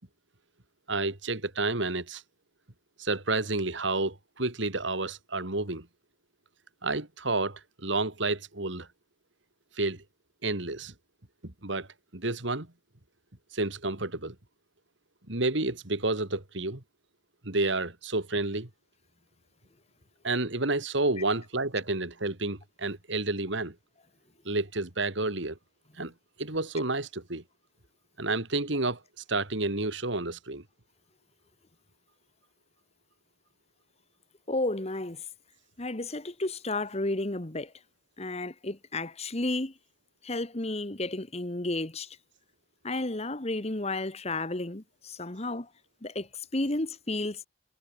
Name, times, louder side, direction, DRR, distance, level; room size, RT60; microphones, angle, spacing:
voice 1, 0.9-2.2 3.0-5.9 6.8-8.9 9.8-10.0 10.4-10.9 11.4-11.9 12.1-12.7 13.5-14.4 15.3-16.8 17.4-18.7 20.2-23.8 24.4-25.6 26.0-26.1 26.4-27.4 28.2-30.6, right 2 dB, 65° right, 2.6 m, -30 dB
voice 2, 34.5-35.2 35.8-37.7 38.2-39.7 40.2-42.2 42.8-45.7 46.0-47.5, left 2 dB, 30° left, 1.4 m, -32 dB
head